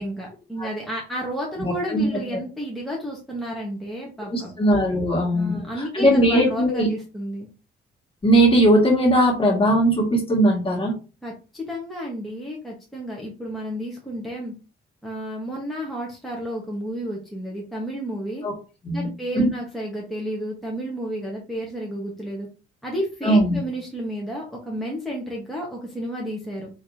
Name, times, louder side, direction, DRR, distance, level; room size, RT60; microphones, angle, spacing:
voice 1, 0.0-4.5 5.3-7.5 11.2-14.5 15.0-18.4 18.9-22.5 22.8-26.7, equal, ahead, -3 dB, 1.3 m, -31 dB
voice 2, 1.6-2.2 4.3-5.6 5.9-6.9 8.2-10.9 18.4-18.5 18.8-19.1 19.4-19.5 23.2-23.6, right 1 dB, 25° left, -2 dB, 1.9 m, -19 dB
4.8 x 3.2 x 2.8 m, 0.33 s
cardioid pair, 90°, 20 cm